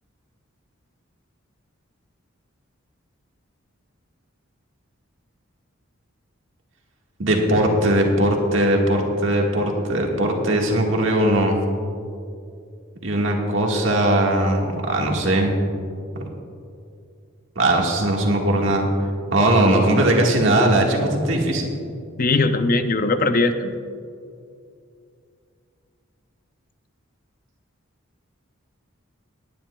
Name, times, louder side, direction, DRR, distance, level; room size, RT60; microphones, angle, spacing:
voice 1, 7.2-11.6 13.0-15.6 17.5-18.9 19.3-21.7, right 1 dB, 65° right, 0 dB, 1.6 m, -19 dB
voice 2, 22.2-23.7, left 3 dB, 40° left, 9 dB, 0.6 m, -20 dB
19.5 x 10.0 x 2.3 m, 2.4 s
head